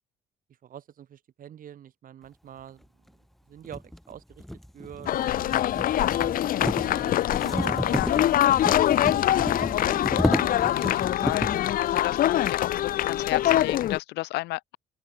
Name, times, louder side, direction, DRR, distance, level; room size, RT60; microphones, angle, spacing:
voice 1, 0.6-2.8 3.5-4.4 4.7-7.1 7.4-8.5 8.9-9.3 9.7-9.8, right 10 dB, 55° right, 7.8 m, -46 dB
sound 1, 2.8-2.9 3.6-11.7, equal, ahead, 1.4 m, -32 dB
sound 2, 5.1-14.0, left 12 dB, 55° left, 0.7 m, -24 dB
voice 2, 7.9-8.4 9.0-9.3 10.6-11.5 11.8-14.8, left 19 dB, 85° left, 2.0 m, -34 dB
open air
cardioid pair, 110°, 17 cm